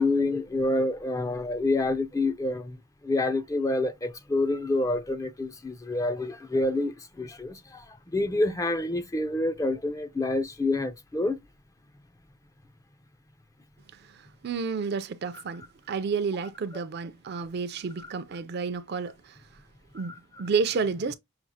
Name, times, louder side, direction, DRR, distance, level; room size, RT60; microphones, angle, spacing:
voice 1, 0.0-2.8 3.0-6.9 7.2-7.6 8.1-11.4, left 2 dB, 15° left, 0.4 m, -27 dB
voice 2, 14.1-19.4 19.9-21.1, right 5 dB, 50° right, 0.4 m, -31 dB
5.8 x 2.4 x 2.8 m
head